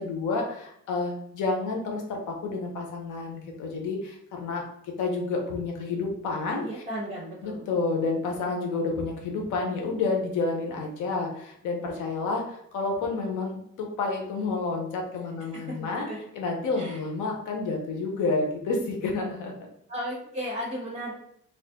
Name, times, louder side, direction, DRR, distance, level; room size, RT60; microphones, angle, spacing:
voice 1, 0.0-4.6 5.0-6.6 7.4-16.1 16.3-19.5, left 3 dB, 85° left, 1 dB, 0.8 m, -29 dB
voice 2, 6.6-7.6 15.5-16.2 16.8-17.0 19.9-21.1, equal, 20° right, -4 dB, 1.0 m, -35 dB
2.6 x 2.4 x 3.5 m, 0.69 s
cardioid pair, 90°, 30 cm